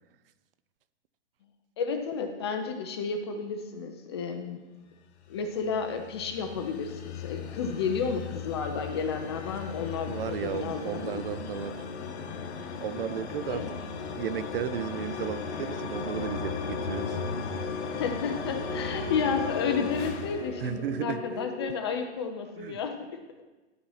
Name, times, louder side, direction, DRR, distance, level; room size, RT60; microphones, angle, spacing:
voice 1, 1.8-4.6 5.3-11.2 11.5-11.7 13.4-13.7 17.7-22.9, left 5 dB, 25° left, 5 dB, 0.4 m, -32 dB
sound 1, 5.3-21.4, left 6 dB, 65° left, 1.2 m, -36 dB
voice 2, 10.1-11.9 12.8-13.6 14.2-17.2 20.6-21.4 22.6-22.8, right 9 dB, 55° right, 14 dB, 0.5 m, -34 dB
sound 2, 15.2-21.6, right 2 dB, 10° right, 0.7 m, -42 dB
12.0 x 4.3 x 5.5 m, 1.1 s
hypercardioid pair, 165°, 36 cm